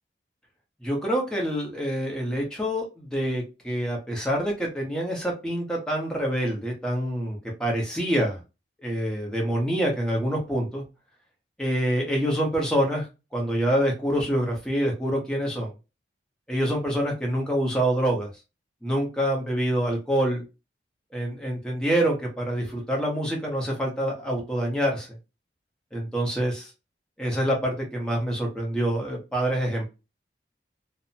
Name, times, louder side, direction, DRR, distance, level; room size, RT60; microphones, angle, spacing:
voice 1, 0.8-8.4 8.8-10.8 11.6-13.1 13.3-15.7 16.5-18.3 18.8-20.4 21.1-25.1 25.9-26.7 27.2-29.9, equal, 5° left, -1 dB, 0.8 m, -26 dB
2.6 x 2.1 x 2.6 m, 0.28 s
head